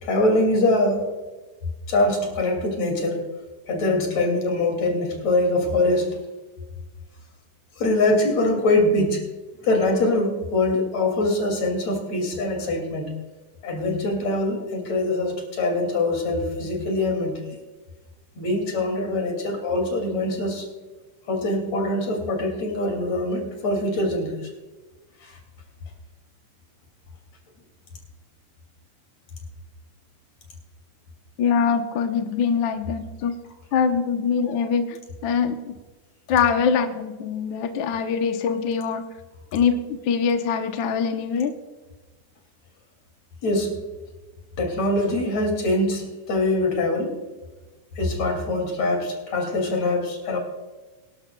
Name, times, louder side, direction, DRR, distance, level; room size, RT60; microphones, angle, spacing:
voice 1, 0.0-1.2 1.9-3.2 3.7-6.2 7.8-9.3 9.6-13.1 13.6-17.5 18.4-20.7 21.3-24.4 25.2-25.4 43.4-43.8 44.6-47.2 48.0-50.4, left 2 dB, 60° left, 2 dB, 3.7 m, -23 dB
voice 2, 31.4-33.3 33.7-34.9 35.2-35.6 36.3-39.0 39.5-41.5, left 6 dB, 80° left, 6 dB, 1.0 m, -23 dB
24.5 x 12.0 x 2.3 m, 1.2 s
omnidirectional pair, 3.5 m